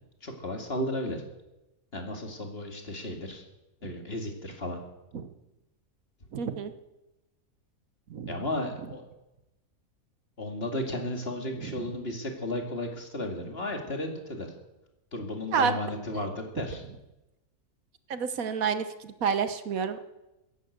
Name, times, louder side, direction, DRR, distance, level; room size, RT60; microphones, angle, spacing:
voice 1, 0.2-1.2 1.9-3.4 3.8-4.8 8.3-9.1 10.4-14.5 15.1-16.8, left 1 dB, 40° left, 3 dB, 2.6 m, -34 dB
voice 2, 6.3-6.7 8.1-8.4 11.7-11.9 15.5-15.8 18.1-20.0, right 6 dB, 70° right, 11 dB, 1.4 m, -29 dB
16.0 x 11.0 x 8.0 m, 0.96 s
omnidirectional pair, 1.5 m